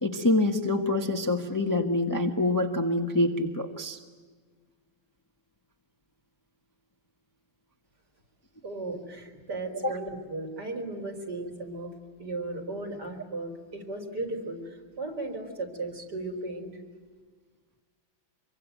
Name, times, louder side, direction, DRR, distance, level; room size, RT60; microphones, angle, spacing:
voice 1, 0.0-4.0 9.8-10.0, left 2 dB, 10° left, 4 dB, 1.4 m, -26 dB
voice 2, 8.6-16.8, right 2 dB, 55° right, 2 dB, 4.8 m, -36 dB
26.0 x 23.5 x 9.3 m, 1.5 s
omnidirectional pair, 2.2 m